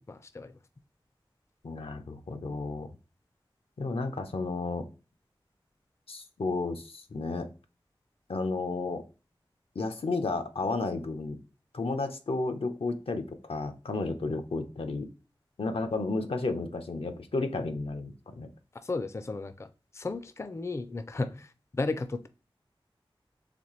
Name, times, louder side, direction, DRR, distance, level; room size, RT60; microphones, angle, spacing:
voice 1, 0.1-0.6 18.8-22.3, left 3 dB, 30° left, 0.3 m, -34 dB
voice 2, 1.6-2.9 3.8-4.9 6.1-7.5 8.3-9.0 9.7-11.4 11.7-15.1 15.6-18.5, left 3 dB, 85° left, 0.6 m, -32 dB
4.1 x 3.2 x 3.0 m
wide cardioid pair, 60°, 9 cm